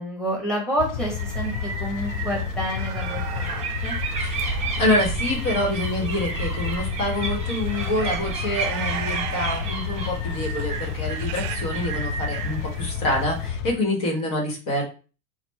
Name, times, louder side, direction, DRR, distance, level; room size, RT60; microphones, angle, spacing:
voice 1, 0.0-4.0, equal, ahead, -2 dB, 1.6 m, -29 dB
sound 1, 0.8-13.7, left 7 dB, 70° left, 0.7 m, -30 dB
sound 2, 1.0-13.5, right 4 dB, 15° right, 1.2 m, -34 dB
sound 3, 2.8-11.6, right 10 dB, 50° right, 0.5 m, -36 dB
voice 2, 4.2-14.8, left 1 dB, 50° left, 1 dB, 1.5 m, -26 dB
4.2 x 2.4 x 4.2 m, 0.36 s
supercardioid pair, 130°, 42 cm